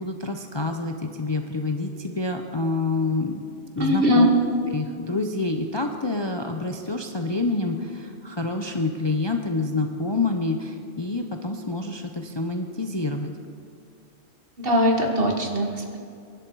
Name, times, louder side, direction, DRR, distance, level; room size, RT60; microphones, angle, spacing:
voice 1, 0.0-3.4 3.8-13.3, left 3 dB, 25° left, 4 dB, 0.7 m, -27 dB
voice 2, 3.8-4.3 14.6-16.0, equal, 45° right, 2 dB, 1.8 m, -21 dB
23.5 x 11.5 x 4.8 m, 2.3 s
omnidirectional pair, 1.3 m